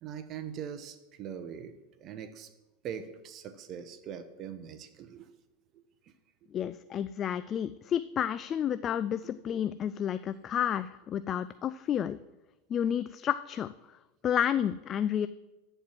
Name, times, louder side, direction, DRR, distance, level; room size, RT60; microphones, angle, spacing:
voice 1, 0.0-2.5 2.8-5.3 5.7-6.1, right 8 dB, 45° right, 10 dB, 0.9 m, -42 dB
voice 2, 6.5-12.2 12.7-13.7 14.2-15.3, left 9 dB, 35° left, 14 dB, 0.4 m, -30 dB
13.0 x 4.6 x 7.4 m, 1.0 s
hypercardioid pair, 90°, 0 cm